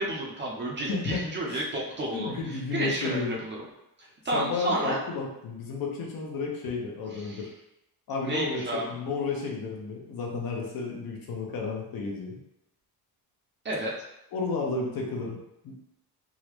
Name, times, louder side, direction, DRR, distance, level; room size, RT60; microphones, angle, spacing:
voice 1, 0.0-3.7 4.0-5.0 7.1-7.5 8.2-9.0 13.6-13.9, right 1 dB, 30° right, -3 dB, 0.6 m, -31 dB
voice 2, 0.9-1.2 1.5-1.6 2.1-3.3 4.3-7.5 8.1-12.4 14.3-15.7, left 4 dB, 65° left, -1 dB, 0.8 m, -32 dB
3.7 x 2.1 x 3.0 m, 0.86 s
cardioid pair, 155°, 38 cm